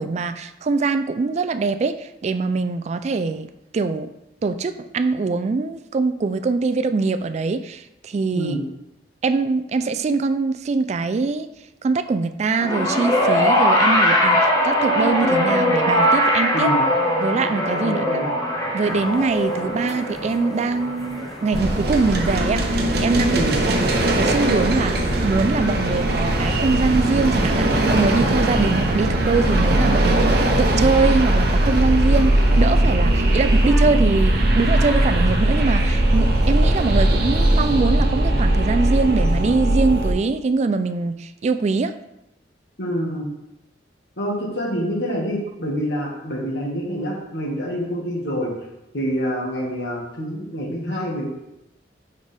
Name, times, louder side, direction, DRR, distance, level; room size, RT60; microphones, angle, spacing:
voice 1, 0.0-3.5 3.7-4.1 4.4-8.5 9.2-11.5 11.8-16.7 17.2-18.0 18.7-23.7 24.0-41.9, right 4 dB, 40° right, 10 dB, 0.3 m, -23 dB
sound 1, 12.6-23.0 24.1-24.2, equal, 20° left, 1.1 m, -21 dB
voice 2, 16.5-16.8 17.8-18.3 23.3-23.5 42.8-43.2 44.2-48.5 48.9-51.3, equal, 70° left, -2 dB, 1.7 m, -26 dB
sound 2, 18.8-37.8, equal, ahead, 0.9 m, -39 dB
sound 3, 21.5-40.1, right 1 dB, 60° right, 0.9 m, -19 dB
6.3 x 5.3 x 3.4 m, 0.90 s
head